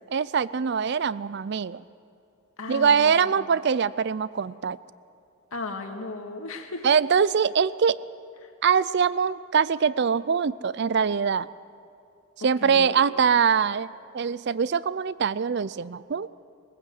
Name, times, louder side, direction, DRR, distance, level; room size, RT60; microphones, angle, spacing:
voice 1, 0.1-1.8 2.7-4.8 6.8-8.0 8.6-11.5 12.4-16.3, right 6 dB, 50° right, 19 dB, 0.4 m, -23 dB
voice 2, 2.6-3.3 5.5-6.9 8.4-8.5 12.4-12.9, left 2 dB, 75° left, 4 dB, 1.9 m, -36 dB
21.0 x 15.5 x 7.8 m, 2.6 s
head